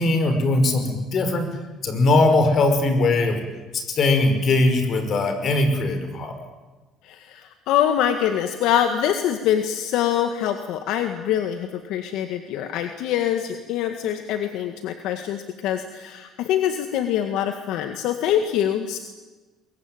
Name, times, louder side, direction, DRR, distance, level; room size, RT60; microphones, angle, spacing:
voice 1, 0.0-1.5 1.8-3.4 3.7-6.3, left 2 dB, 50° left, 8 dB, 5.6 m, -20 dB
voice 2, 7.0-19.0, left 10 dB, 75° left, 7 dB, 1.8 m, -24 dB
23.0 x 22.5 x 9.2 m, 1.2 s
cardioid pair, 105°, 0 cm